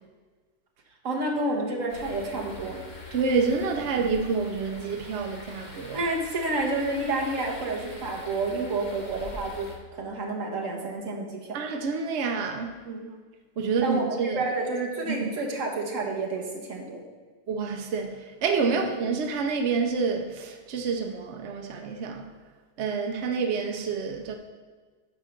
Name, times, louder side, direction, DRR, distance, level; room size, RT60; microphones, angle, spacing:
voice 1, 1.0-2.8 5.9-11.6 12.9-13.1 13.8-17.0 18.7-18.8, right 2 dB, 50° right, 1.6 m, -30 dB
sound 1, 1.9-9.8, left 3 dB, 30° left, 1.1 m, -44 dB
voice 2, 3.1-6.0 11.5-12.7 13.6-14.4 15.1-15.3 17.5-22.3 22.8-24.3, right 5 dB, 65° right, 0.7 m, -28 dB
9.9 x 3.8 x 6.5 m
omnidirectional pair, 1.9 m